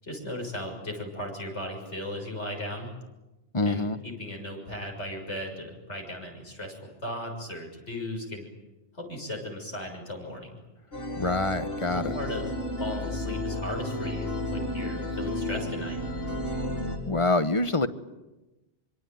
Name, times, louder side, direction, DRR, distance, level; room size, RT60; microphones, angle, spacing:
voice 1, 0.0-2.9 3.6-8.5 8.9-10.6 11.9-12.5 12.8-16.0, left 1 dB, 75° left, 1 dB, 6.9 m, -36 dB
voice 2, 3.5-4.0 11.2-12.1 17.1-17.9, left 2 dB, 30° left, 11 dB, 1.1 m, -25 dB
sound 1, 10.9-17.0, left 1 dB, 55° left, 5.3 m, -32 dB
25.5 x 24.5 x 9.2 m, 1.1 s
omnidirectional pair, 1.2 m